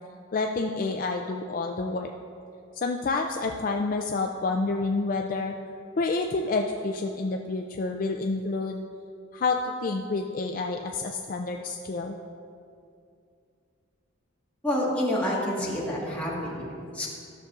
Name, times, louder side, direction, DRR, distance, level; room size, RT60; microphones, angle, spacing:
voice 1, 0.3-2.1 2.7-5.5 6.0-8.8 9.3-12.2, left 3 dB, 45° left, 3 dB, 0.3 m, -28 dB
voice 2, 14.6-17.1, left 1 dB, 5° left, -6 dB, 1.5 m, -28 dB
14.0 x 6.6 x 2.4 m, 2.4 s
head